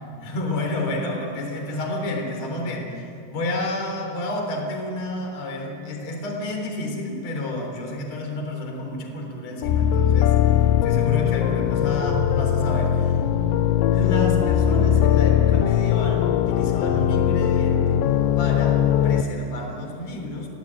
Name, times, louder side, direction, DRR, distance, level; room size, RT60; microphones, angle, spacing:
voice 1, 0.2-13.2 13.9-20.5, left 1 dB, 40° left, 2 dB, 4.6 m, -30 dB
sound 1, 9.6-19.2, left 10 dB, 85° left, 3.1 m, -20 dB
28.0 x 18.0 x 8.9 m, 2.6 s
omnidirectional pair, 5.2 m